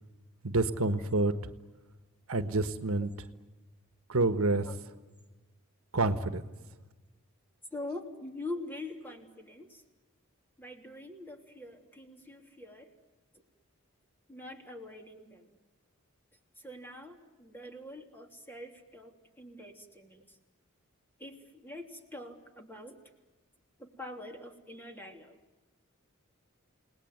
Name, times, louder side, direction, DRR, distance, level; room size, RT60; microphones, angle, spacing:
voice 1, 0.4-1.5 2.3-3.1 4.1-4.7 5.9-6.4, right 2 dB, 75° right, 10 dB, 1.5 m, -28 dB
voice 2, 7.7-9.8 10.6-12.9 13.3-13.4 14.3-15.6 16.6-20.4 21.2-23.0 23.8-25.4, left 2 dB, 10° left, 4 dB, 3.2 m, -44 dB
30.0 x 19.5 x 9.5 m, 1.2 s
head